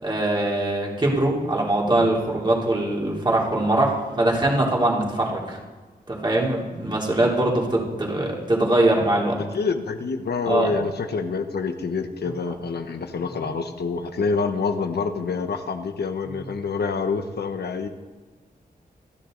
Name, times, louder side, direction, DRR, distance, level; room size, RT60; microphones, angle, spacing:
voice 1, 0.0-5.6 6.1-9.4 10.4-10.7, right 1 dB, 30° right, -3 dB, 3.3 m, -22 dB
voice 2, 9.5-17.9, left 4 dB, 90° left, 7 dB, 1.1 m, -27 dB
27.5 x 10.5 x 3.9 m, 1.3 s
wide cardioid pair, 120°, 16 cm